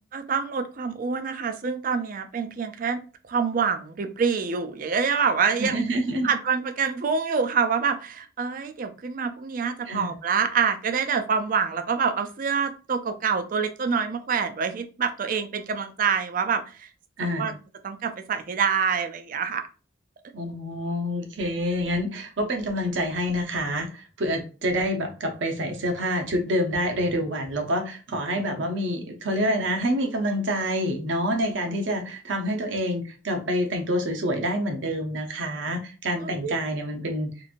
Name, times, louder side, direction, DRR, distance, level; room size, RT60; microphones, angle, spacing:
voice 1, 0.1-3.0 3.3-5.8 6.2-16.9 17.4-17.5 17.8-19.7 36.2-36.5, right 6 dB, 45° right, 8 dB, 0.4 m, -26 dB
voice 2, 5.6-6.3 9.9-10.1 17.2-17.5 20.3-37.3, equal, 70° right, 3 dB, 0.7 m, -27 dB
2.9 x 2.5 x 2.5 m, 0.35 s
head